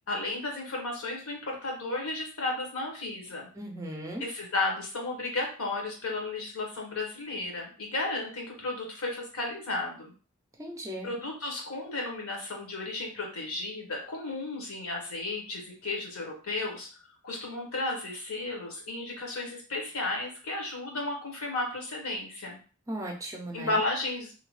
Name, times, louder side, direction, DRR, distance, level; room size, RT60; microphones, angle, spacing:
voice 1, 0.1-3.5 4.2-10.1 11.0-16.9 17.2-22.6 23.5-24.3, left 2 dB, 80° left, 0 dB, 1.0 m, -33 dB
voice 2, 3.6-4.2 10.6-11.1 22.9-23.8, right 1 dB, 15° right, 1 dB, 0.5 m, -37 dB
2.7 x 2.2 x 3.1 m, 0.38 s
head